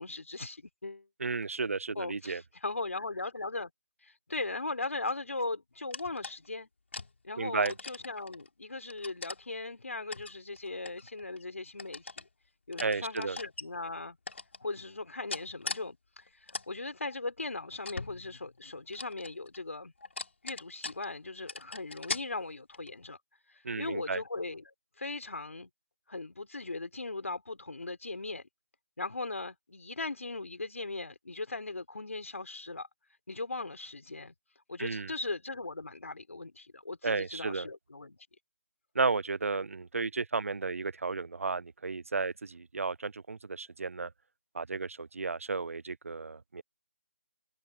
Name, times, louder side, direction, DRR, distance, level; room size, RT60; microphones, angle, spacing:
voice 1, 0.0-1.1 2.0-3.7 4.0-6.7 7.2-12.2 12.7-14.2 14.6-19.9 20.4-23.2 23.5-25.7 26.1-28.4 29.0-32.9 33.3-34.3 34.7-38.2, left 3 dB, 85° left, 4.0 m, -38 dB
voice 2, 1.2-2.4 7.4-7.7 12.8-13.4 23.6-24.2 34.8-35.1 37.0-37.7 38.9-44.1 44.5-46.6, right 4 dB, 85° right, 0.4 m, -33 dB
sound 1, 5.9-6.5 6.9-7.1 7.6-8.5 8.9-9.4 10.1-11.4 11.8-12.3 12.7-13.6 14.3-14.6 15.3-15.8 16.2-16.7 17.1-17.2 17.8-18.6 18.9-19.6 20.0-21.2 21.5-22.2 22.7-23.0, left 3 dB, 60° left, 4.2 m, -41 dB
figure-of-eight pair, 170°, 7 cm